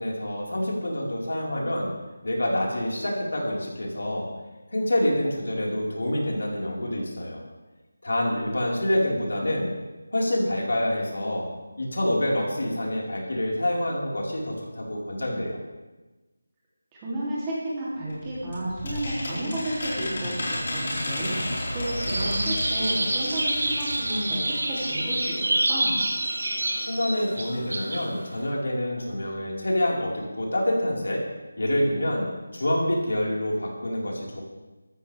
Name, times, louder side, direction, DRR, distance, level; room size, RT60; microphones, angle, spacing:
voice 1, 0.0-2.0 2.2-4.3 4.7-7.4 8.0-9.7 10.1-11.5 11.8-15.6 26.9-31.2 31.6-32.2 32.5-34.4, left 1 dB, 75° left, -3 dB, 4.5 m, -27 dB
voice 2, 16.9-26.0, right 1 dB, 15° right, -8 dB, 3.0 m, -32 dB
sound 1, 18.1-25.0 25.3-25.4 25.6-25.7, left 1 dB, 45° left, 4.5 m, -32 dB
sound 2, 21.9-28.5, right 1 dB, 70° right, 5.0 m, -28 dB
14.5 x 13.5 x 3.5 m, 1.2 s
figure-of-eight pair, 175°, 0 cm